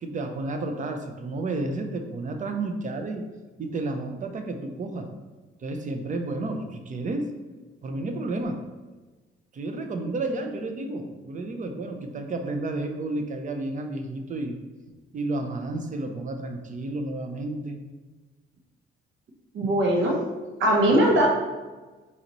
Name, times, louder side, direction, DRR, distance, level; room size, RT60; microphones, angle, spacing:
voice 1, 0.0-3.2 3.6-5.1 5.6-7.3 7.8-8.6 9.5-14.6 15.1-17.8, right 2 dB, 40° right, 5 dB, 0.6 m, -31 dB
voice 2, 19.5-20.2 20.6-21.3, right 1 dB, 75° right, 0 dB, 0.9 m, -20 dB
4.1 x 4.0 x 3.0 m, 1.3 s
cardioid pair, 90°, 20 cm